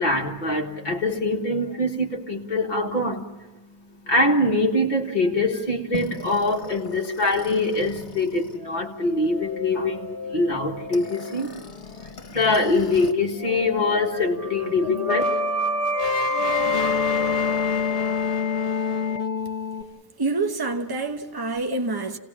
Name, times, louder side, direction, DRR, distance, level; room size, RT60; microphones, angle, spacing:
voice 1, 0.0-3.3 4.0-15.2, left 2 dB, 40° left, 1.8 m, -24 dB
sound 1, 5.9-13.1 13.4-19.8, left 3 dB, 70° left, 1.6 m, -28 dB
voice 2, 20.2-22.2, right 3 dB, 20° right, 1.1 m, -27 dB
28.5 x 18.0 x 7.3 m
omnidirectional pair, 1.2 m